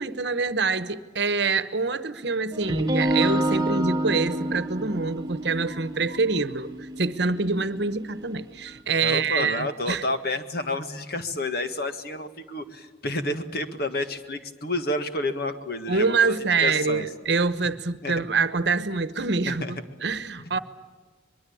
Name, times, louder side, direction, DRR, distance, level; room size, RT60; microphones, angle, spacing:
voice 1, 0.0-10.0 15.9-20.6, right 4 dB, 60° right, 1.1 m, -26 dB
sound 1, 2.5-8.4, right 1 dB, 20° right, 1.3 m, -28 dB
voice 2, 9.0-17.1 18.0-18.1 19.4-19.7 20.4-20.6, left 2 dB, 50° left, 1.7 m, -30 dB
23.5 x 22.5 x 8.6 m
head